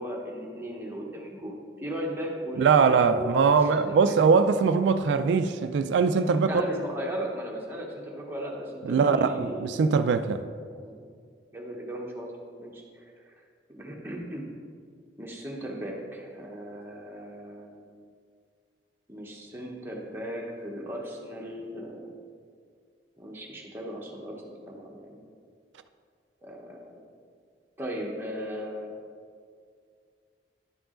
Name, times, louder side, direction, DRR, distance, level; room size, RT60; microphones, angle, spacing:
voice 1, 0.0-4.1 6.4-10.1 10.7-11.0 11.5-12.3 12.6-13.3 13.8-14.5 15.2-17.9 19.1-22.1 23.2-25.2 26.4-27.0 27.8-29.0, equal, 15° right, -2 dB, 0.9 m, -37 dB
voice 2, 2.6-6.6 8.8-10.4, right 5 dB, 90° right, 10 dB, 0.3 m, -22 dB
10.5 x 4.6 x 3.8 m, 2.1 s
head